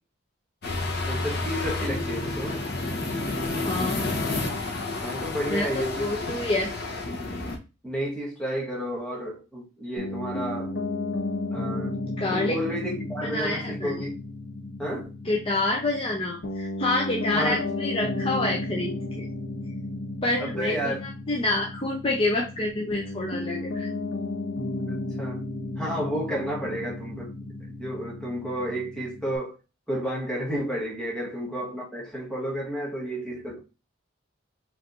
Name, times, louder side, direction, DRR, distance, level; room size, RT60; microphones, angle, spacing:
sound 1, 0.6-7.6, left 2 dB, 55° left, 0.9 m, -30 dB
voice 1, 1.0-2.6 5.0-6.1 7.8-10.7 11.5-14.2 14.8-15.1 17.3-17.6 20.4-21.0 24.9-25.4 25.7-27.5 27.8-29.6 29.9-33.6, equal, 5° left, 1.3 m, -31 dB
voice 2, 3.3-4.0 5.5-6.7 12.2-12.6 13.2-14.1 15.2-19.3 20.2-23.9, left 2 dB, 30° left, 0.6 m, -28 dB
Piano, 10.0-29.4, left 2 dB, 80° left, 1.2 m, -33 dB
4.4 x 3.2 x 2.5 m
head